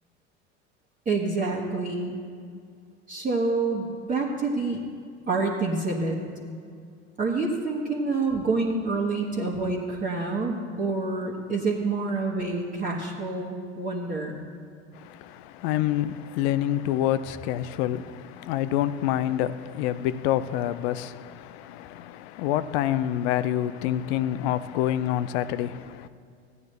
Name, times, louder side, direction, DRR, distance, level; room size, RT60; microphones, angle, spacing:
voice 1, 1.0-2.2 3.1-4.8 5.3-6.2 7.2-14.4, right 3 dB, 25° right, 1.4 m, -27 dB
voice 2, 14.9-26.1, left 12 dB, 70° left, 0.6 m, -27 dB
15.0 x 9.5 x 3.3 m
hypercardioid pair, 80°, 34 cm